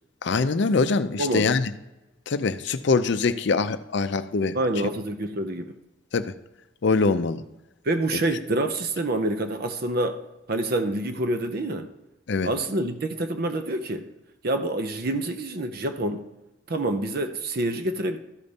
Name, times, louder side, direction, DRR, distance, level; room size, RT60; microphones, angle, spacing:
voice 1, 0.2-1.7 2.3-4.6 6.1-6.3 6.8-7.4 12.3-12.5, left 4 dB, 55° left, 11 dB, 0.5 m, -23 dB
voice 2, 1.2-1.5 4.5-5.7 7.8-10.2 10.5-11.9 12.4-14.1 14.4-16.2 16.7-18.2, right 1 dB, 45° right, 8 dB, 0.6 m, -27 dB
13.0 x 5.1 x 4.1 m, 0.98 s
head